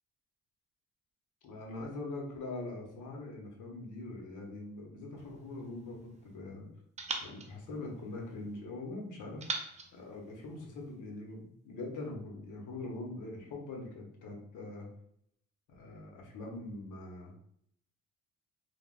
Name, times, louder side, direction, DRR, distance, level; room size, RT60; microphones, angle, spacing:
voice 1, 1.4-6.7 7.2-14.9 15.7-17.3, left 2 dB, 80° left, 0 dB, 0.8 m, -43 dB
sound 1, 5.2-6.4 7.0-8.6 9.4-11.0, right 3 dB, 25° right, 0.4 m, -43 dB
3.3 x 2.1 x 2.4 m, 0.71 s
cardioid pair, 90°, 30 cm